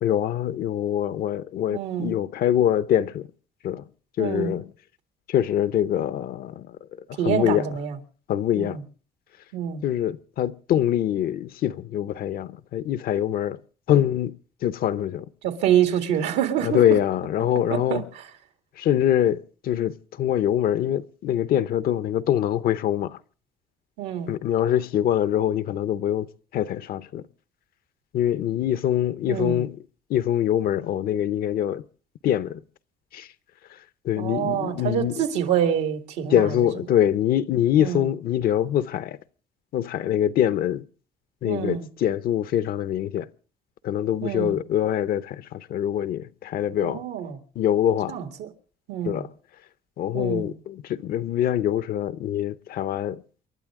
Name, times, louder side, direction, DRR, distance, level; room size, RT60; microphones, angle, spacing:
voice 1, 0.0-3.3 3.6-3.8 4.2-4.7 5.3-6.8 7.2-7.6 8.3-8.8 9.8-13.6 13.9-14.4 14.6-15.2 16.6-18.0 18.8-23.2 24.3-26.3 26.5-27.2 28.1-29.8 30.1-31.8 32.2-32.6 33.1-33.3 34.0-35.2 36.3-39.2 39.7-40.9 41.4-43.3 43.8-47.0 47.6-48.2 49.1-49.3 50.0-53.2, left 11 dB, 60° left, 0.7 m, -24 dB
voice 2, 1.7-2.1 4.2-4.6 7.2-8.0 8.6-8.8 9.5-9.8 15.4-16.8 17.7-18.2 24.0-24.3 29.3-29.6 34.2-36.6 37.8-38.1 41.4-41.9 44.2-44.6 46.8-47.4 48.1-48.5 48.9-49.2 50.1-50.5, right 10 dB, 90° right, 2.1 m, -26 dB
28.5 x 12.0 x 3.7 m
cardioid pair, 110°, 17 cm